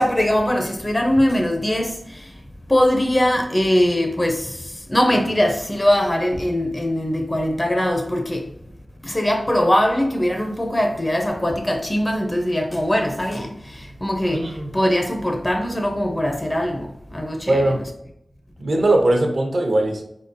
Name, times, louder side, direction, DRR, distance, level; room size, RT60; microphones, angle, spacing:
voice 1, 0.0-2.3 2.7-8.5 9.0-17.8, left 1 dB, 20° left, 0.5 m, -21 dB
voice 2, 14.3-14.7 17.5-17.9 18.6-20.0, right 1 dB, 75° right, 0.8 m, -20 dB
4.3 x 3.7 x 2.6 m
wide cardioid pair, 90°, 0 cm